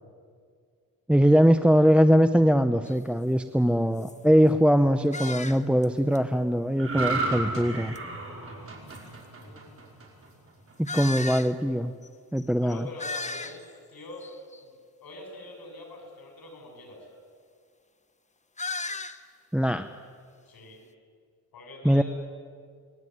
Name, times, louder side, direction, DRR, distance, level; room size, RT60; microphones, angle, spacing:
voice 1, 1.1-7.9 10.8-11.9 12.3-12.8 19.5-19.9 21.8-22.0, equal, 5° right, 9 dB, 0.6 m, -21 dB
sound 1, 2.8-3.0 3.5-3.6 4.0-4.2 5.1-5.8 6.1-6.2 7.9-8.0 8.9-9.0 10.8-11.5 12.0-12.1 12.4-12.5 12.7-13.8 14.2-14.6 18.6-19.2, left 3 dB, 20° left, 1.0 m, -35 dB
sound 2, 6.8-10.3 10.7-10.9, right 3 dB, 40° right, 5.3 m, -32 dB
voice 2, 9.1-9.7 12.6-14.3 14.6-14.7 15.0-17.1 20.5-20.8 21.5-22.0, left 1 dB, 90° left, 2 dB, 7.4 m, -45 dB
29.0 x 20.5 x 9.4 m, 2.1 s
wide cardioid pair, 145°, 35 cm